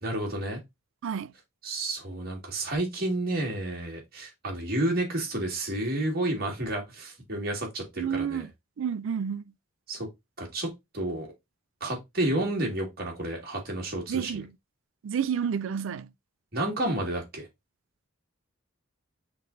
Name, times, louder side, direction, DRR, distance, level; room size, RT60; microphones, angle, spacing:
voice 1, 0.0-0.6 1.6-8.5 9.9-10.1 10.4-10.7 10.9-11.3 11.8-14.4 16.5-17.5, right 1 dB, 45° right, 1.9 m, -30 dB
voice 2, 8.0-8.5 8.8-9.4 14.1-14.5 15.0-16.1, right 7 dB, 65° right, 0.3 m, -30 dB
5.7 x 3.4 x 2.5 m
head